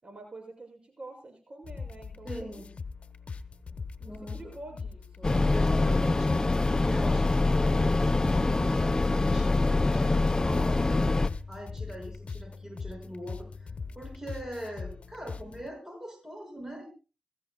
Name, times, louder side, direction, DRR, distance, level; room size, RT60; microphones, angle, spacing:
voice 1, 0.0-2.7 4.0-5.4, right 2 dB, 50° right, 3 dB, 6.6 m, -47 dB
sound 1, 1.6-15.7, left 4 dB, 65° left, 1.1 m, -41 dB
voice 2, 2.2-2.7 4.1-4.5 5.5-11.1 11.5-13.7 13.9-16.9, equal, 20° right, 4 dB, 5.7 m, -42 dB
sound 2, 5.2-11.3, left 2 dB, 30° left, 0.7 m, -24 dB
24.0 x 14.5 x 2.2 m, 0.32 s
cardioid pair, 50°, 2 cm